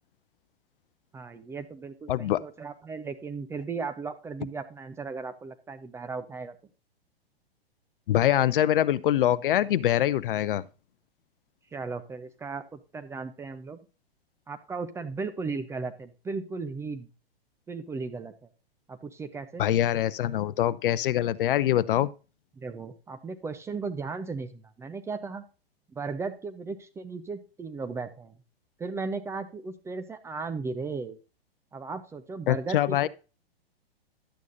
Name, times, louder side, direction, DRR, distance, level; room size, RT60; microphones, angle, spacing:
voice 1, 1.1-6.5 11.7-13.8 14.5-17.1 17.7-18.5 18.9-19.6 22.6-25.4 25.9-28.3 28.8-31.2 31.7-33.1, right 4 dB, 10° right, 0.4 m, -36 dB
voice 2, 2.1-2.4 8.1-10.6 19.6-22.1 32.5-33.1, left 12 dB, 60° left, 0.6 m, -24 dB
11.0 x 8.2 x 2.6 m
hypercardioid pair, 110°, 30 cm